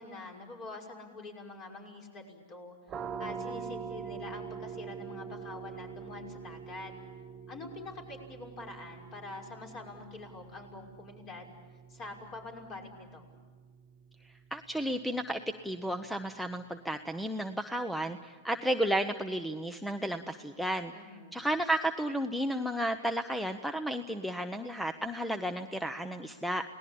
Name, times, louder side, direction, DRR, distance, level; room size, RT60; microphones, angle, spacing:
voice 1, 0.0-2.8 3.2-6.9 7.5-11.5 11.9-13.2 20.9-21.4, left 2 dB, 35° left, 2 dB, 5.9 m, -45 dB
sound 1, 2.9-14.4, right 6 dB, 25° right, 0.9 m, -44 dB
voice 2, 14.5-20.9 21.3-26.6, right 1 dB, ahead, 9 dB, 0.9 m, -33 dB
29.0 x 19.0 x 8.7 m, 1.4 s
hypercardioid pair, 115°, 0 cm